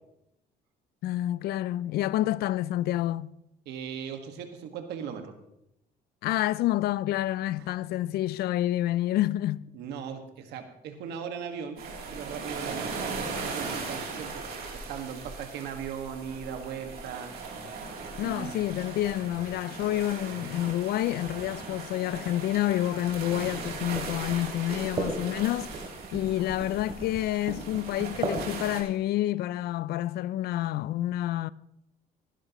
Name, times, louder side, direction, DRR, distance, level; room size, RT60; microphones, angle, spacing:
voice 1, 1.0-3.3 6.2-9.6 18.2-25.9 26.1-31.5, left 14 dB, 70° left, 0.4 m, -28 dB
voice 2, 3.7-5.3 9.7-11.8 12.1-14.3 14.7-17.3 18.2-18.5, right 7 dB, 80° right, 1.7 m, -38 dB
sound 1, 11.8-28.8, right 4 dB, 65° right, 3.2 m, -38 dB
sound 2, 18.0-29.0, right 3 dB, 35° right, 3.1 m, -38 dB
17.0 x 11.0 x 3.1 m
cardioid pair, 110°, 17 cm